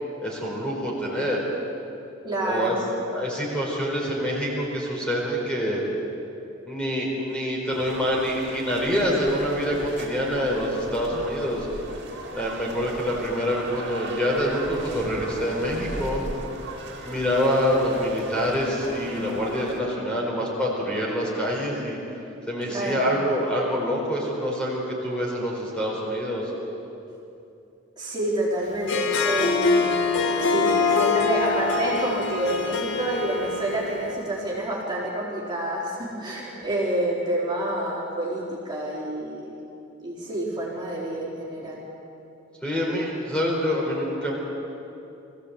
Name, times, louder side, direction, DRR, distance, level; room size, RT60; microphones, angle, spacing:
voice 1, 0.2-1.4 2.4-2.7 3.1-5.8 6.7-11.7 12.3-16.2 17.0-22.0 22.5-26.5 42.6-44.3, equal, 5° left, -4 dB, 4.4 m, -26 dB
voice 2, 2.2-2.8 22.7-23.1 28.0-39.6 40.0-41.8, right 1 dB, 20° right, -6 dB, 4.1 m, -28 dB
sound 1, 7.7-19.8, right 2 dB, 55° right, 2.5 m, -38 dB
Harp, 28.7-34.2, left 4 dB, 60° left, 1.9 m, -24 dB
24.0 x 16.0 x 8.2 m, 2.8 s
head